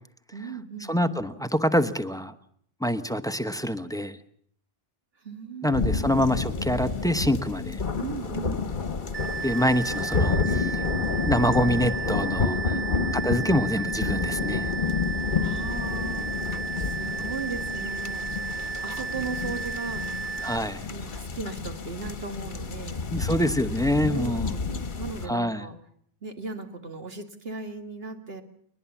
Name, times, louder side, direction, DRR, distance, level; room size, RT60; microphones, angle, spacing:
voice 1, 0.3-1.0 5.2-6.1 8.0-8.6 10.4-11.3 12.4-12.9 15.4-16.3 16.8-20.3 20.9-23.1 24.1-25.8 26.2-28.4, right 4 dB, 65° right, 6 dB, 2.3 m, -37 dB
voice 2, 0.9-2.3 2.8-4.2 5.6-7.8 9.4-10.8 11.2-12.6 13.2-14.7 20.4-20.9 23.1-24.5 25.3-25.6, equal, 5° left, 10 dB, 0.9 m, -26 dB
sound 1, 5.7-25.3, left 4 dB, 50° left, 1.3 m, -30 dB
sound 2, 9.1-20.6, right 5 dB, 50° right, 1.4 m, -33 dB
22.0 x 20.5 x 7.2 m, 0.64 s
omnidirectional pair, 1.1 m